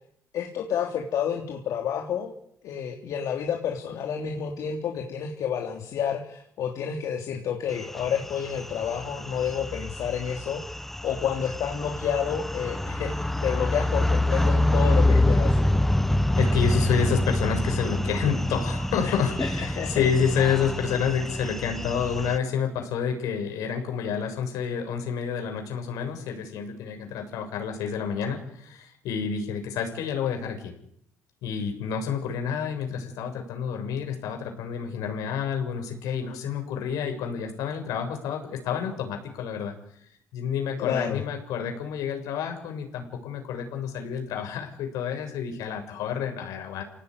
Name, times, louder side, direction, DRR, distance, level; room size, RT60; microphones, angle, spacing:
voice 1, 0.3-2.3 2.6-10.6 11.0-15.9 19.0-19.1 19.6-19.9 40.8-41.2, left 8 dB, 70° left, 2 dB, 3.4 m, -30 dB
sound 1, 7.8-22.4, left 1 dB, 5° left, 1.0 m, -26 dB
voice 2, 16.4-30.7 31.4-39.8 40.3-46.8, left 7 dB, 90° left, 4 dB, 7.0 m, -29 dB
29.0 x 18.0 x 9.8 m, 0.72 s
cardioid pair, 105°, 6 cm